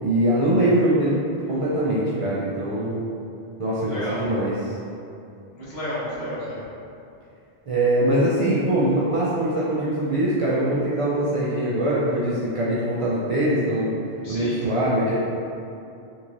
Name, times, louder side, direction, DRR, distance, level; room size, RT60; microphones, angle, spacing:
voice 1, 0.0-3.0 3.6-4.8 7.7-13.9 14.3-15.2, right 1 dB, 55° right, -8 dB, 0.3 m, -22 dB
voice 2, 3.9-4.2 5.5-6.6 14.2-14.8, equal, 70° left, -9 dB, 1.2 m, -32 dB
3.6 x 2.9 x 2.5 m, 2.6 s
omnidirectional pair, 1.1 m